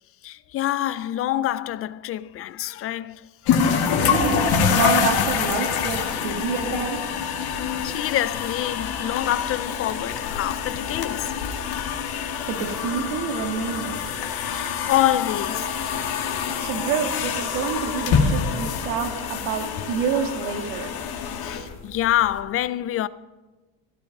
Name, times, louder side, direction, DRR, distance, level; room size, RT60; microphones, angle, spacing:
voice 1, 0.2-3.6 7.5-11.3 14.5-16.7 21.4-23.1, left 13 dB, 35° left, 0.4 m, -27 dB
sound 1, 3.5-22.3, left 6 dB, 50° left, 2.1 m, -26 dB
voice 2, 4.0-7.0 12.5-14.0 16.6-20.9, right 6 dB, 90° right, 2.6 m, -28 dB
16.0 x 12.5 x 5.3 m
cardioid pair, 155°, 47 cm